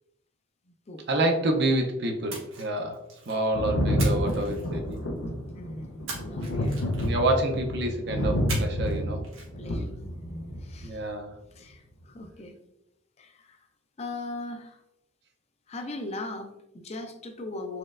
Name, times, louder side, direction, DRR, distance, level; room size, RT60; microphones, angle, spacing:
voice 1, 1.1-5.0 6.9-9.2 9.6-9.9 10.8-11.4, right 1 dB, 55° right, 3 dB, 0.6 m, -28 dB
Splash splatter, 2.3-3.5 4.0-5.2 6.1-7.3 8.5-9.0 9.2-9.5, right 4 dB, 90° right, 1.2 m, -40 dB
Thunder, 3.5-10.9 12.0-12.1, equal, 85° left, 0.6 m, -29 dB
voice 2, 5.5-6.8 9.6-11.0 11.5-12.5 13.2-13.7 14.0-14.8 15.7-17.8, left 2 dB, 35° left, 5 dB, 0.4 m, -39 dB
4.3 x 3.1 x 2.4 m, 0.88 s
head